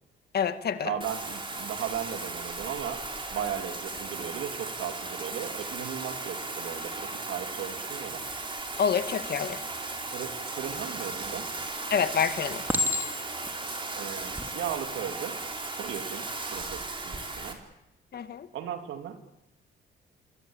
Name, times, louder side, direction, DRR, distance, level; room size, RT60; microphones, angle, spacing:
voice 1, 0.3-1.0 8.8-9.7 11.9-12.6 18.1-18.5, left 7 dB, 55° left, 10 dB, 2.0 m, -27 dB
voice 2, 0.8-3.0 3.3-8.3 10.1-11.5 13.9-15.4 15.8-17.6 18.5-19.2, right 9 dB, 80° right, 6 dB, 3.1 m, -36 dB
Bathtub (filling or washing), 1.0-17.5, right 3 dB, 25° right, 4.8 m, -36 dB
Chink clink, 11.2-11.7 12.7-13.5 14.2-14.5, left 2 dB, 10° right, 3.0 m, -29 dB
27.0 x 22.5 x 9.0 m, 0.91 s
cardioid pair, 90°, 20 cm